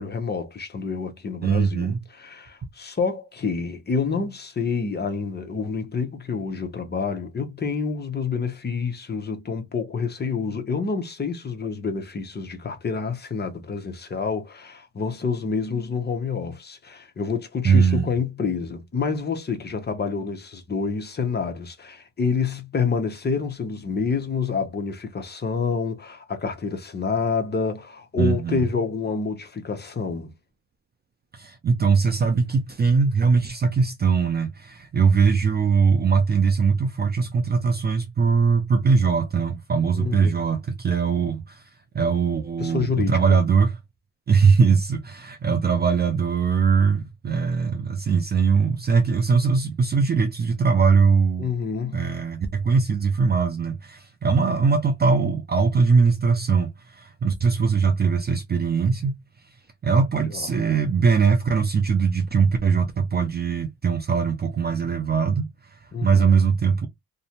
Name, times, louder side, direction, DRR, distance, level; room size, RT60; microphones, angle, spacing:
voice 1, 0.0-30.3 40.0-40.3 42.6-43.2 51.4-52.1 60.3-60.5 65.9-66.3, left 5 dB, 25° left, 0.7 m, -28 dB
voice 2, 1.4-2.0 17.6-18.1 28.2-28.6 31.3-41.6 41.9-43.8 44.3-51.5 51.9-59.1 59.8-66.9, right 5 dB, 30° right, 0.4 m, -21 dB
2.6 x 2.1 x 2.8 m
cardioid pair, 115°, 37 cm